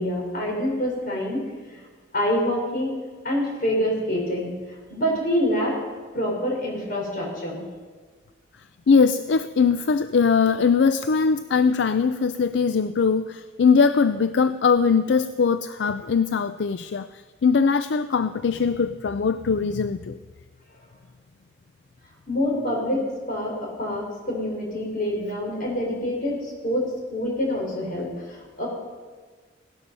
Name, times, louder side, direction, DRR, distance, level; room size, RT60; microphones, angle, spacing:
voice 1, 0.0-1.8 2.1-2.9 3.2-4.5 4.9-5.8 6.1-7.6 22.3-28.7, equal, 50° left, -1 dB, 4.9 m, -26 dB
voice 2, 8.9-20.2, left 5 dB, 75° left, 12 dB, 0.4 m, -21 dB
17.0 x 12.0 x 5.5 m, 1.4 s
head